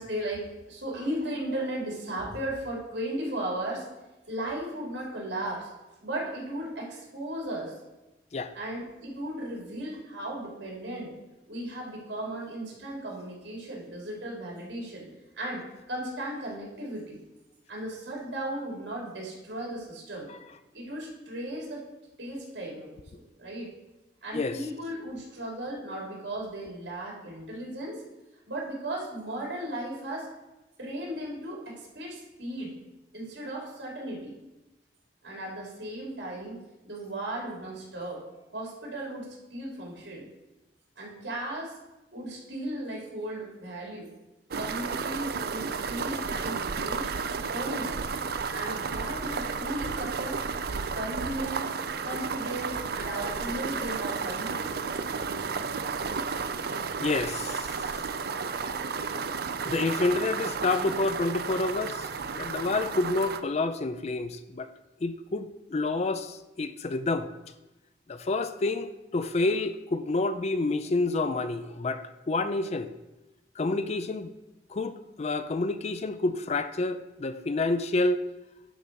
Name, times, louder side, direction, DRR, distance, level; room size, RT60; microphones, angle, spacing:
voice 1, 0.0-3.9 4.3-5.7 6.0-7.7 8.5-11.1 11.5-15.0 15.3-15.6 15.9-17.2 17.7-20.3 20.7-21.8 22.2-23.0 23.4-23.7 24.2-28.0 28.5-30.3 30.8-32.7 33.1-34.3 35.2-36.6 36.8-38.2 38.5-40.2 41.0-41.7 42.1-44.1 44.6-47.1 47.5-48.0 48.5-50.4 50.7-51.7 52.0-54.7, right 1 dB, 75° right, -2 dB, 3.3 m, -36 dB
sound 1, 44.5-63.4, right 5 dB, 55° right, 0.5 m, -32 dB
voice 2, 57.0-57.9 59.6-64.7 65.0-67.3 68.1-72.9 73.6-74.3 74.7-78.2, left 3 dB, 35° left, 11 dB, 0.4 m, -29 dB
11.0 x 4.0 x 6.3 m, 1.0 s
head